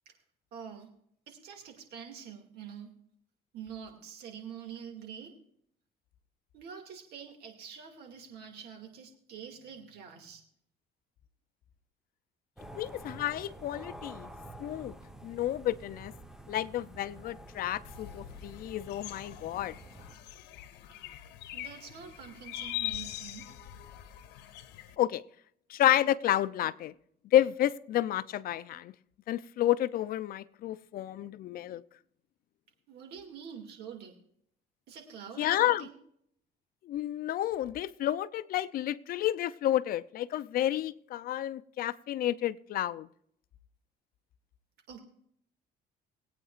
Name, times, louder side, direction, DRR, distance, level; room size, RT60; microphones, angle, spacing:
voice 1, 0.5-0.9 1.3-2.9 3.5-5.3 6.5-10.4 20.9-21.0 21.5-23.5 32.9-34.1 34.9-36.0 44.9-45.0, right 7 dB, 75° right, 2.3 m, -46 dB
sound 1, 12.6-20.2, right 1 dB, 5° right, 1.0 m, -49 dB
voice 2, 12.8-14.3 14.6-14.9 15.2-16.1 16.5-19.8 25.0-25.2 25.7-26.9 27.3-28.9 29.3-31.8 35.4-35.9 36.8-43.1, left 12 dB, 60° left, 0.5 m, -30 dB
sound 2, 17.8-25.0, left 14 dB, 90° left, 0.9 m, -42 dB
21.0 x 8.9 x 2.5 m
cardioid pair, 110°, 17 cm